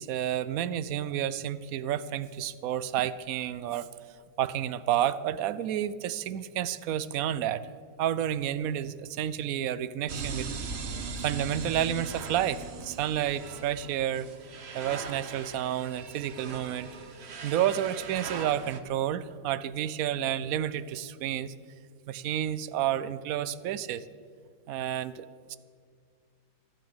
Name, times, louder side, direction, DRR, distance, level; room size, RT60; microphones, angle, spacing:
voice 1, 0.0-3.9 4.4-7.7 8.0-10.5 11.2-14.3 14.7-16.9 17.4-21.5 22.1-24.0 24.7-25.6, right 11 dB, 65° right, 16 dB, 0.9 m, -30 dB
sound 1, 10.1-18.8, right 4 dB, 45° right, 1.1 m, -40 dB
13.5 x 12.5 x 8.0 m, 2.1 s
omnidirectional pair, 1.8 m